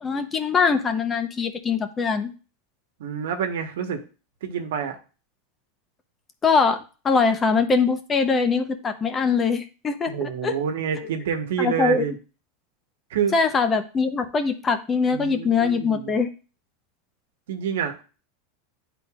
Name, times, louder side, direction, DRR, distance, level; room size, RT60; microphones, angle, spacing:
voice 1, 0.0-2.3 6.4-10.6 11.6-12.0 13.3-16.3, left 5 dB, 20° left, 8 dB, 0.7 m, -22 dB
voice 2, 3.0-4.0 4.4-5.0 10.1-12.1 13.1-13.3 15.1-16.1 17.5-18.0, right 7 dB, 85° right, 6 dB, 1.1 m, -27 dB
10.0 x 3.9 x 2.4 m, 0.34 s
supercardioid pair, 135°, 0 cm